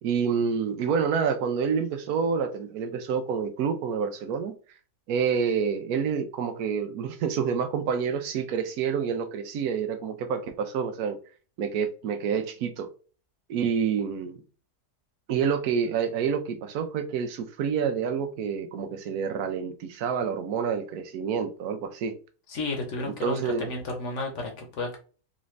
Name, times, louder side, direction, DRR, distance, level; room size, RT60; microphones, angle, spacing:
voice 1, 0.0-4.5 5.1-11.2 11.6-12.9 13.5-14.4 15.3-22.1 23.1-23.7, right 6 dB, 75° right, 1.0 m, -28 dB
voice 2, 22.5-25.0, left 3 dB, 50° left, 1.2 m, -32 dB
4.0 x 2.5 x 3.2 m
omnidirectional pair, 1.7 m